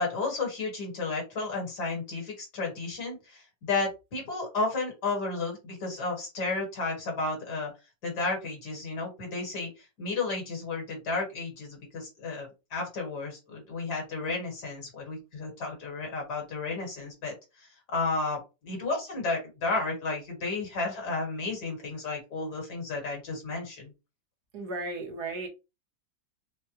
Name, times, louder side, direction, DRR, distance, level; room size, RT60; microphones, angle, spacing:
voice 1, 0.0-7.7 8.0-23.9, left 3 dB, 65° left, 2.1 m, -32 dB
voice 2, 24.5-25.5, right 2 dB, 65° right, 1.5 m, -35 dB
4.5 x 2.1 x 3.0 m
omnidirectional pair, 1.9 m